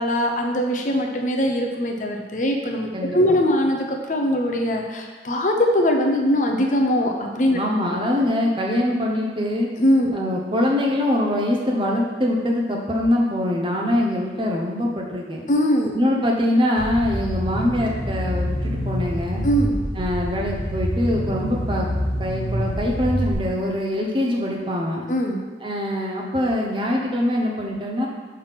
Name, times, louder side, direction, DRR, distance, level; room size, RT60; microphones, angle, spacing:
voice 1, 0.0-7.6 9.8-10.1 15.5-15.9 19.4-19.8 25.1-25.4, equal, 45° left, 2 dB, 0.6 m, -21 dB
voice 2, 7.5-9.7 10.1-15.4 15.9-19.4 20.0-21.9 22.2-25.1 25.6-28.1, left 1 dB, 25° right, -1 dB, 0.8 m, -23 dB
sound 1, 16.8-23.3, equal, 10° left, 1.8 m, -26 dB
5.6 x 3.5 x 5.7 m, 1.4 s
head